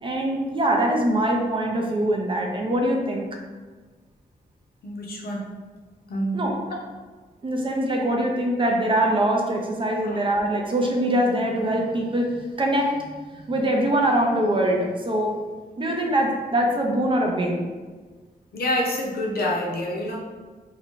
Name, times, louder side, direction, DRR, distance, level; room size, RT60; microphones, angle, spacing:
voice 1, 0.0-3.3 6.3-6.6 7.4-15.4 15.8-17.7, right 1 dB, 30° right, 1 dB, 0.4 m, -23 dB
voice 2, 4.8-5.5 6.1-6.4 6.7-6.8 10.0-10.2 18.5-20.2, left 1 dB, 70° left, -1 dB, 0.6 m, -27 dB
2.5 x 2.2 x 3.6 m, 1.4 s
wide cardioid pair, 120°, 16 cm